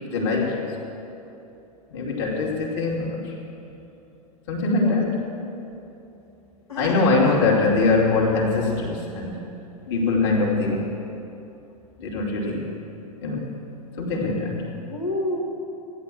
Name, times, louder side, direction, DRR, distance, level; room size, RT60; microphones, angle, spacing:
voice 1, 0.1-0.9 1.9-3.3 4.5-5.1 6.8-9.4 9.9-10.9 12.0-12.7 13.2-13.5 14.0-14.7, left 3 dB, 50° left, -2 dB, 2.7 m, -22 dB
voice 2, 2.3-2.6 4.7-5.1 6.7-7.3 9.9-11.2 14.8-15.4, left 2 dB, 70° left, -5 dB, 2.6 m, -33 dB
14.5 x 10.5 x 7.6 m, 2.9 s
figure-of-eight pair, 95°, 19 cm